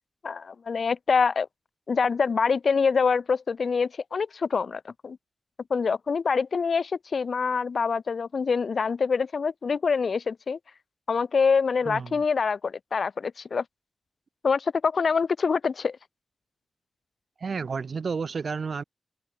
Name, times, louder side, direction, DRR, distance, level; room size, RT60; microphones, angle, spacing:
voice 1, 0.2-1.5 1.9-5.2 5.7-10.6 11.1-13.6 14.4-16.0, left 5 dB, 65° left, 0.5 m, -25 dB
voice 2, 11.8-12.2 17.4-18.8, right 5 dB, 65° right, 1.2 m, -31 dB
open air
wide cardioid pair, 95°, 0 cm